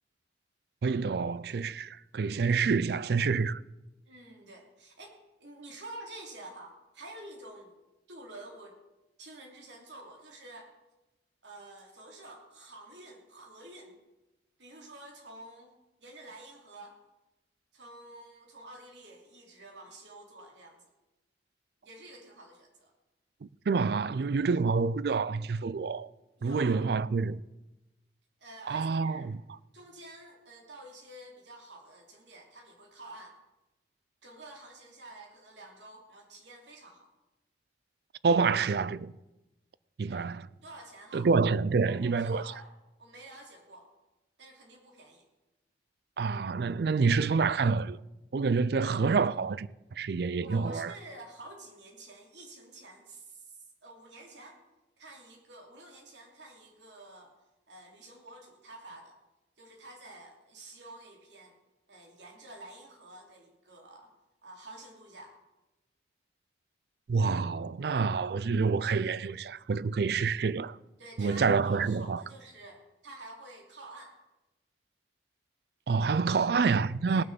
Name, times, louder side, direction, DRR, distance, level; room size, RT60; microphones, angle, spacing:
voice 1, 0.8-3.6 23.4-26.1 26.4-27.4 28.7-29.4 38.2-39.1 40.0-40.5 41.1-42.4 46.2-48.0 48.3-49.7 50.0-50.9 67.1-70.8 71.2-72.2 75.9-77.2, right 4 dB, 60° right, 0.4 m, -27 dB
voice 2, 4.0-7.7 8.1-8.8 9.2-10.7 11.4-14.0 14.6-15.7 16.0-17.0 17.7-20.9 21.8-22.9 26.4-26.8 28.4-29.3 29.7-33.4 34.2-37.1 40.0-40.2 40.6-41.3 41.8-42.7 43.0-43.9 44.4-45.3 50.4-54.6 55.0-57.3 57.7-59.2 59.6-61.5 61.9-64.1 64.4-65.4 70.0-70.2 71.0-74.2 77.1-77.2, right 2 dB, 80° right, 2.8 m, -49 dB
18.0 x 6.5 x 6.9 m
head